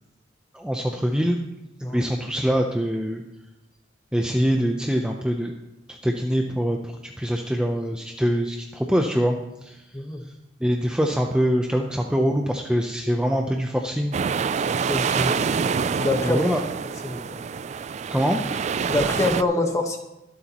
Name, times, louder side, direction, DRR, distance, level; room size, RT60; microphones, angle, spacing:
voice 1, 0.5-1.4 1.8-3.2 4.1-5.5 5.9-9.8 10.6-14.2 16.2-16.6 18.1-18.4, equal, 5° right, 2 dB, 0.6 m, -24 dB
sound 1, 14.1-19.4, right 6 dB, 35° right, 0.3 m, -26 dB
voice 2, 14.9-15.4 15.9-16.4 17.0-17.4 18.9-20.0, left 2 dB, 15° left, 3 dB, 1.3 m, -25 dB
22.5 x 8.1 x 3.0 m, 0.99 s
head